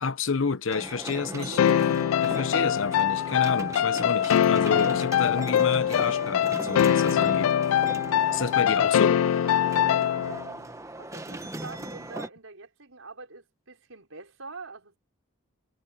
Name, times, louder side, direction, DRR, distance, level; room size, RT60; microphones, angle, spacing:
voice 1, 0.0-1.6 2.2-7.5 8.3-9.3, left 4 dB, 70° left, 0.9 m, -29 dB
sound 1, 0.7-12.3, right 2 dB, 15° right, 1.1 m, -38 dB
voice 2, 1.0-2.6 11.0-15.0, right 3 dB, 80° right, 4.8 m, -44 dB
sound 2, 1.6-10.5, left 9 dB, 90° left, 0.3 m, -23 dB
Wind instrument woodwind instrument, 2.8-10.0, left 2 dB, 35° right, 4.0 m, -52 dB
head